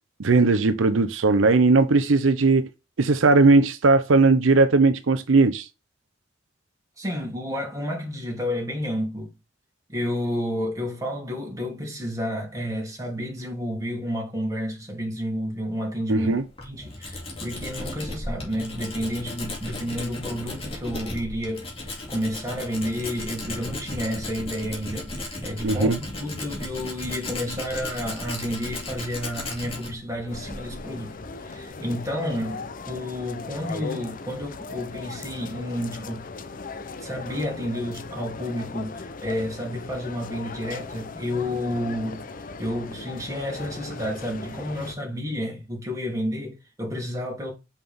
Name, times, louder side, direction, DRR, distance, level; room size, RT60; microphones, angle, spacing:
voice 1, 0.2-2.7 3.0-5.7 16.1-16.4 25.6-26.0, right 3 dB, 85° right, 0.6 m, -18 dB
voice 2, 7.0-9.3 9.9-16.3 16.6-25.1 25.4-31.2 31.4-36.2 37.0-42.2 42.6-47.5, equal, 15° right, 2.8 m, -30 dB
Tools, 16.3-31.7, left 2 dB, 30° left, 2.4 m, -36 dB
sound 1, 30.3-44.9, left 4 dB, 45° left, 0.6 m, -38 dB
5.8 x 5.5 x 3.5 m
head